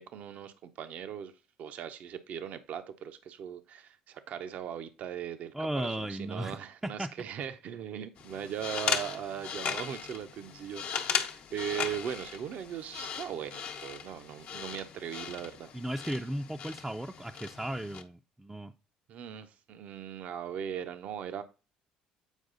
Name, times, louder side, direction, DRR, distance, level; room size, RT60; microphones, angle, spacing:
voice 1, 0.0-1.3 1.6-15.7 19.1-21.4, right 9 dB, 60° right, 9 dB, 0.7 m, -39 dB
voice 2, 5.5-6.6 6.8-7.1 15.7-18.7, right 1 dB, 10° right, 3 dB, 0.5 m, -35 dB
sound 1, 8.2-18.0, left 7 dB, 60° left, 1.0 m, -37 dB
8.2 x 4.7 x 3.8 m, 0.31 s
supercardioid pair, 70°, 3 cm